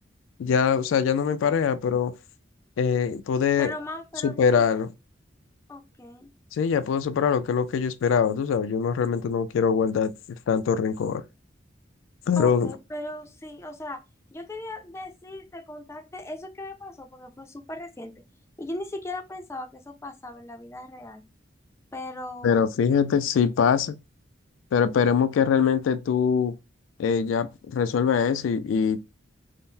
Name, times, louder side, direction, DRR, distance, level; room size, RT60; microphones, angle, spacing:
voice 1, 0.4-2.1 2.8-3.7 4.2-4.9 6.5-10.1 10.5-11.2 12.3-12.7 22.4-23.9 24.7-26.5 27.0-29.0, left 6 dB, 85° left, 0.3 m, -23 dB
voice 2, 3.6-4.8 5.7-6.3 12.3-14.0 14.3-18.1 18.6-21.2 21.9-22.6, left 1 dB, 15° left, 0.4 m, -38 dB
3.6 x 2.0 x 2.6 m
head